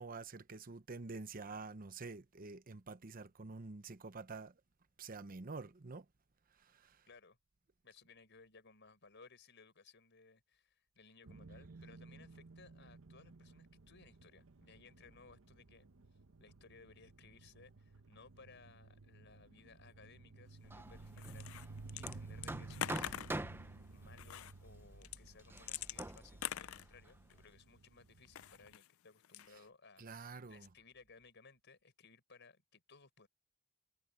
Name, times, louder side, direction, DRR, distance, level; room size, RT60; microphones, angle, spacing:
voice 1, 0.0-4.6 5.0-6.1 6.5-7.1 30.0-30.7, right 3 dB, 45° right, 0.8 m, -48 dB
voice 2, 7.1-7.4 7.8-15.9 16.4-33.3, left 4 dB, 60° left, 5.0 m, -62 dB
sound 1, 11.2-28.7, right 3 dB, 80° right, 1.0 m, -56 dB
Hammer, 20.6-27.5, right 1 dB, 10° right, 0.7 m, -47 dB
sound 2, 21.2-22.1 22.4-23.4 24.2-24.5 25.0-27.4 28.2-28.9 29.2-29.7, left 11 dB, 85° left, 0.4 m, -44 dB
head